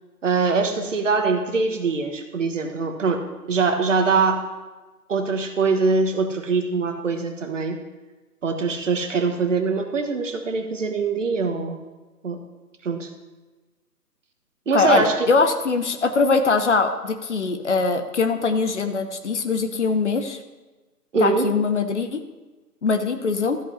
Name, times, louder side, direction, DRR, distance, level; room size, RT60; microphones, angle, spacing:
voice 1, 0.2-4.5 5.1-7.8 8.4-11.8 12.2-12.4 12.8-13.1 14.7-15.3 21.1-21.5, right 4 dB, 50° right, 6 dB, 1.3 m, -23 dB
voice 2, 14.7-20.4 21.2-22.2 22.8-23.6, left 4 dB, 45° left, 8 dB, 0.9 m, -22 dB
13.5 x 5.4 x 5.6 m, 1.2 s
figure-of-eight pair, 155°, 48 cm